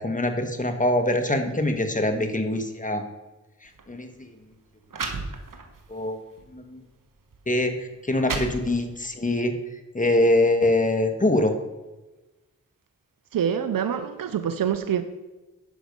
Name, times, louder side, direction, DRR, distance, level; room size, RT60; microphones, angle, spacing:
voice 1, 0.0-3.0 3.9-4.1 5.9-6.2 6.5-6.8 7.5-7.7 8.1-9.5 9.9-11.5, left 1 dB, 25° left, 1.5 m, -23 dB
sound 1, 3.6-3.8 4.6-4.7 4.9-5.8 6.4-6.5 7.3-7.4 7.9-9.1, right 4 dB, 75° right, 1.3 m, -33 dB
voice 2, 13.3-15.0, right 8 dB, 90° right, 0.6 m, -25 dB
10.0 x 6.1 x 5.3 m
cardioid pair, 40°, 33 cm